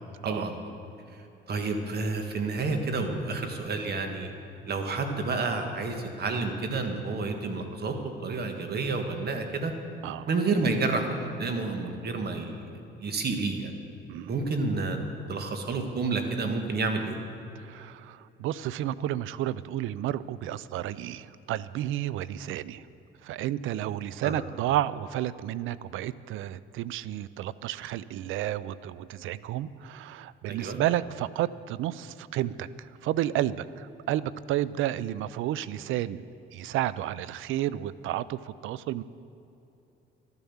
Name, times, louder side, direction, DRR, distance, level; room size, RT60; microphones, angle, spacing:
voice 1, 0.2-0.8 1.5-4.3 4.7-7.9 8.2-9.7 10.3-12.6 13.0-13.7 14.3-17.2 24.2-24.4 30.5-30.8, right 3 dB, 55° right, 5 dB, 1.7 m, -30 dB
voice 2, 17.6-22.9 23.2-36.2 36.5-39.0, right 13 dB, 85° right, 18 dB, 0.4 m, -31 dB
12.5 x 10.5 x 7.2 m, 2.9 s
cardioid pair, 90°, 20 cm